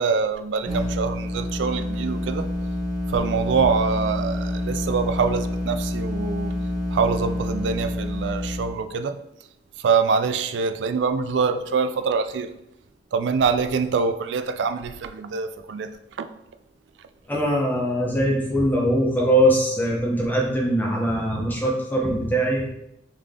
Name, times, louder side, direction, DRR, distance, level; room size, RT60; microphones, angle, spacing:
voice 1, 0.0-2.5 3.1-6.6 6.9-9.2 9.8-12.5 13.1-15.9 16.2-16.3, right 5 dB, 70° right, 10 dB, 0.3 m, -24 dB
sound 1, 0.6-8.7, left 1 dB, 25° right, 1.4 m, -28 dB
voice 2, 17.3-22.6, equal, 10° left, -4 dB, 0.9 m, -22 dB
3.6 x 3.3 x 3.6 m, 0.82 s
head